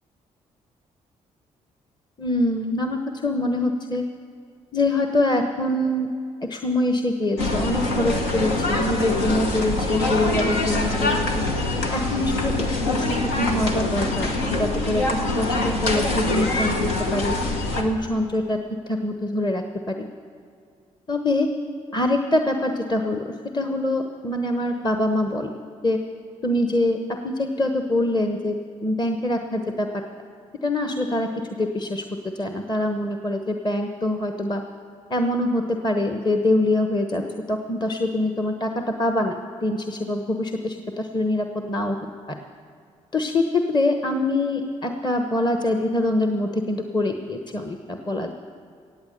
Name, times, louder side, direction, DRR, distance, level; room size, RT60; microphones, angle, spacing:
voice 1, 2.2-4.0 4.7-6.1 6.5-11.4 11.9-17.4 17.8-18.6 18.9-20.1 21.1-21.5 21.9-25.5 25.8-26.0 26.4-30.0 30.6-31.3 31.6-32.0 32.3-34.6 35.1-37.2 37.5-42.0 42.3-42.4 43.1-48.3, left 1 dB, 25° left, 6 dB, 1.1 m, -24 dB
sound 1, 7.4-17.8, left 2 dB, 85° left, 1.1 m, -24 dB
16.5 x 8.6 x 6.7 m, 2.3 s
hypercardioid pair, 40°, 17 cm